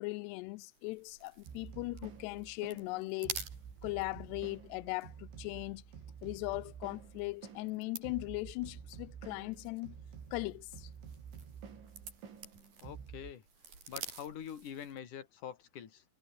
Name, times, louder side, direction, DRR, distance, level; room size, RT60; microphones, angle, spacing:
voice 1, 0.0-3.4 3.8-5.8 6.2-10.0 10.3-10.9, left 23 dB, 85° left, 2.4 m, -39 dB
sound 1, 0.7-15.1, right 5 dB, 50° right, 7.0 m, -51 dB
sound 2, 1.5-13.3, right 7 dB, 80° right, 6.8 m, -50 dB
voice 2, 12.8-13.4 13.9-16.0, left 9 dB, 50° left, 3.7 m, -45 dB
omnidirectional pair, 5.3 m